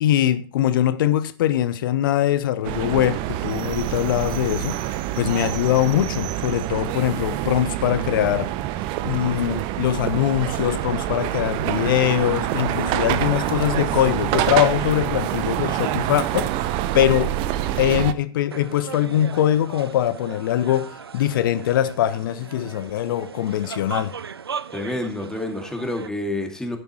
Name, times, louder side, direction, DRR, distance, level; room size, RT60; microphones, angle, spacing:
voice 1, 0.0-4.8 5.2-8.5 9.0-16.5 16.9-17.3 17.8-24.1, left 12 dB, 60° left, 0.8 m, -22 dB
sound 1, 2.6-18.1, right 13 dB, 45° right, 0.8 m, -26 dB
sound 2, 18.5-26.1, right 6 dB, 85° right, 0.4 m, -37 dB
voice 2, 24.7-26.8, left 1 dB, 5° left, 2.3 m, -28 dB
12.0 x 9.8 x 3.1 m
figure-of-eight pair, 95°, 13 cm